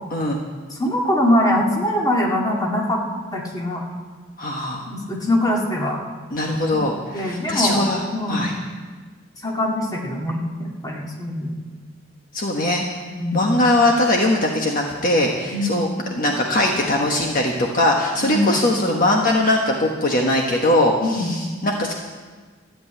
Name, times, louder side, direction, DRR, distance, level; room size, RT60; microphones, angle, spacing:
voice 1, 0.7-3.0 3.3-3.8 4.8-6.0 6.7-6.8 7.1-7.9 8.1-8.5 9.4-11.5 13.2-13.5 15.5-15.7 18.2-18.5 21.0-21.3, left 1 dB, 20° left, -1 dB, 2.1 m, -22 dB
voice 2, 4.4-4.9 6.3-8.0 8.3-8.5 12.3-12.8 13.3-21.9, left 1 dB, 45° left, 0 dB, 1.3 m, -20 dB
14.0 x 8.0 x 9.1 m, 1.4 s
head